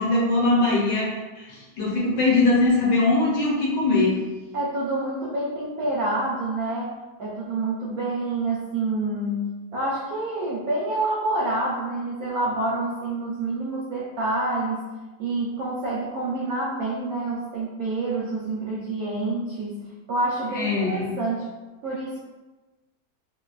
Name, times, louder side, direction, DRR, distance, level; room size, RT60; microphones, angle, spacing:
voice 1, 0.0-4.2 20.5-21.1, left 2 dB, 70° left, -5 dB, 1.5 m, -21 dB
voice 2, 4.5-6.9 7.2-14.8 15.2-21.5 21.8-22.2, right 2 dB, 70° right, -5 dB, 0.9 m, -27 dB
3.9 x 2.2 x 2.3 m, 1.2 s
omnidirectional pair, 1.9 m